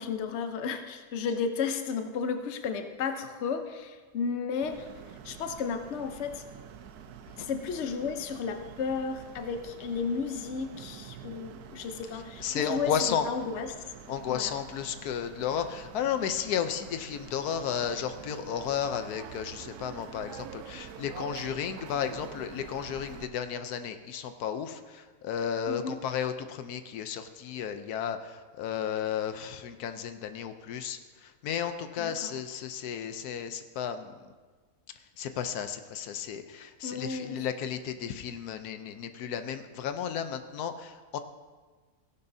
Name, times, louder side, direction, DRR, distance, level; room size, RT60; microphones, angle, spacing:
voice 1, 0.0-4.9 5.2-6.4 7.4-13.7 14.3-14.5 25.7-26.0 32.0-32.3 36.8-37.5, left 5 dB, 55° left, 7 dB, 1.0 m, -33 dB
sound 1, 4.6-23.3, right 8 dB, 85° right, 1.2 m, -47 dB
voice 2, 12.4-13.3 14.1-34.2 35.2-41.2, left 8 dB, 85° left, 9 dB, 1.2 m, -33 dB
16.5 x 11.0 x 2.7 m, 1.4 s
omnidirectional pair, 1.6 m